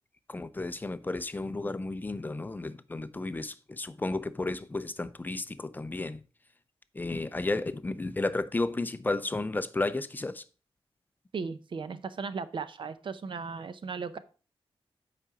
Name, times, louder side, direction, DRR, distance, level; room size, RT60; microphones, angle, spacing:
voice 1, 0.3-6.2 6.9-10.4, left 2 dB, 20° left, 0.5 m, -33 dB
voice 2, 11.3-14.2, right 5 dB, 55° right, 0.7 m, -36 dB
8.4 x 5.1 x 4.8 m
wide cardioid pair, 150°, 10 cm